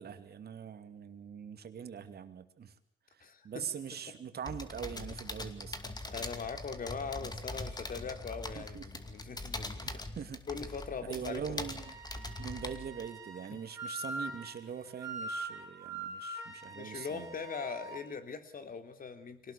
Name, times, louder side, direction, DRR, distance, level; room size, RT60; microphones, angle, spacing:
voice 1, 0.0-2.7 3.1-5.8 8.5-8.8 9.9-10.4 11.1-11.9 12.4-17.3, right 7 dB, 55° right, 9 dB, 2.6 m, -42 dB
voice 2, 3.2-3.7 5.8-9.9 10.5-11.7 12.1-12.3 16.5-19.5, left 5 dB, 45° left, 8 dB, 3.3 m, -41 dB
sound 1, 4.4-13.1, left 2 dB, 20° left, 2.5 m, -42 dB
Wind instrument woodwind instrument, 11.7-18.0, right 2 dB, 15° right, 6.1 m, -43 dB
24.5 x 18.5 x 6.9 m, 0.65 s
cardioid pair, 90°, 20 cm